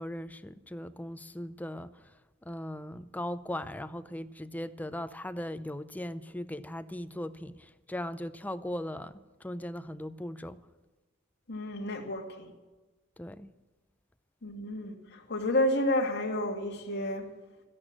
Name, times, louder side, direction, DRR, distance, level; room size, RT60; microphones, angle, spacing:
voice 1, 0.0-2.0 2.4-10.6 13.2-13.5, left 1 dB, 10° left, 0.5 m, -38 dB
voice 2, 11.5-12.5 14.4-17.3, left 1 dB, 55° left, 2.3 m, -30 dB
13.0 x 11.0 x 7.5 m
head